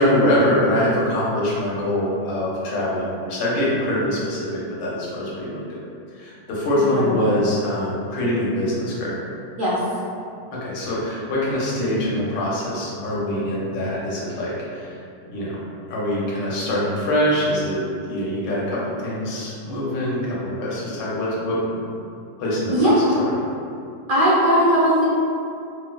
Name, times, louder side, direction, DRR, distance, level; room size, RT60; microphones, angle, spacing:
voice 1, 0.0-5.8 6.1-9.1 10.5-14.9 15.3-15.6 15.9-17.8 18.1-21.8 22.4-23.4, left 1 dB, 75° left, -6 dB, 1.4 m, -24 dB
voice 2, 22.7-23.1 24.1-25.0, equal, 60° right, -9 dB, 0.9 m, -18 dB
4.4 x 2.0 x 2.2 m, 2.5 s
omnidirectional pair, 1.9 m